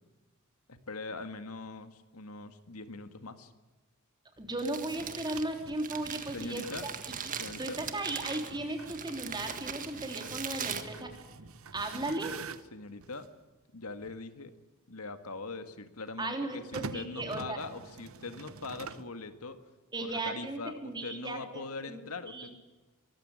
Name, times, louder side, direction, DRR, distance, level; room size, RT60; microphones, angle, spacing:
voice 1, 0.7-3.5 6.3-6.9 7.4-7.8 12.7-13.3 13.7-14.5 14.9-19.7 20.0-22.5, left 3 dB, 90° left, 9 dB, 1.8 m, -42 dB
voice 2, 4.4-6.9 7.2-7.3 7.6-11.1 11.7-12.3 16.2-17.6 19.9-22.0 22.3-22.5, right 2 dB, 20° right, 4 dB, 3.6 m, -36 dB
Crumpling crinkling, 4.4-11.7, right 7 dB, 40° right, 1.6 m, -41 dB
sound 1, 4.8-13.3 14.0-14.1 16.5-19.2, right 4 dB, 70° right, 1.0 m, -47 dB
23.5 x 14.0 x 9.8 m, 1.2 s
head